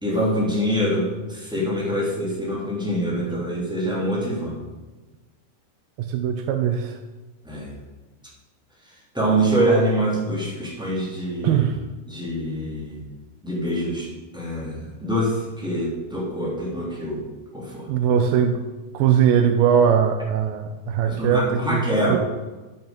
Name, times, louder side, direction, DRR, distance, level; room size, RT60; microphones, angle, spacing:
voice 1, 0.0-4.6 7.4-7.7 9.1-11.7 12.1-13.0 13.4-17.2 17.5-17.9 21.0-22.2, right 1 dB, ahead, -6 dB, 2.0 m, -25 dB
voice 2, 6.0-7.0 11.4-11.8 17.9-18.6 18.9-22.2, right 8 dB, 90° right, 6 dB, 2.0 m, -20 dB
9.5 x 7.6 x 5.2 m, 1.2 s
omnidirectional pair, 4.8 m